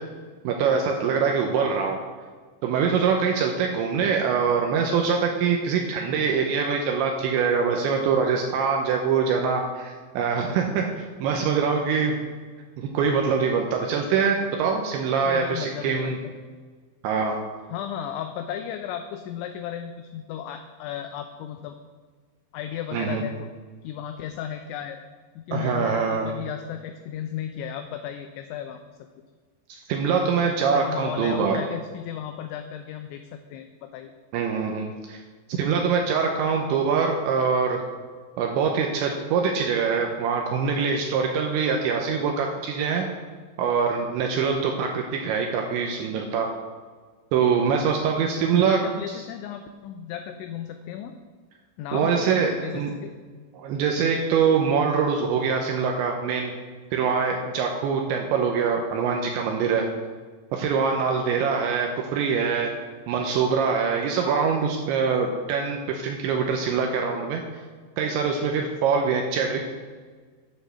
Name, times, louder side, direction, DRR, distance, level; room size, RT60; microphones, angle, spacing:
voice 1, 0.4-2.0 2.6-12.2 12.8-16.2 17.0-17.4 22.9-23.2 25.5-26.3 29.7-31.6 34.3-35.2 35.5-37.8 38.4-43.1 43.6-46.5 47.3-48.8 51.9-52.9 53.5-56.5 56.9-59.9 60.5-62.7 63.1-67.4 68.0-69.6, right 6 dB, 80° right, 2 dB, 2.8 m, -24 dB
voice 2, 15.2-16.2 17.7-21.8 22.5-23.5 23.8-25.0 25.4-29.0 30.7-34.1 48.2-51.1 51.8-53.1, left 9 dB, 85° left, 6 dB, 2.7 m, -35 dB
9.0 x 7.1 x 6.6 m, 1.5 s
omnidirectional pair, 5.8 m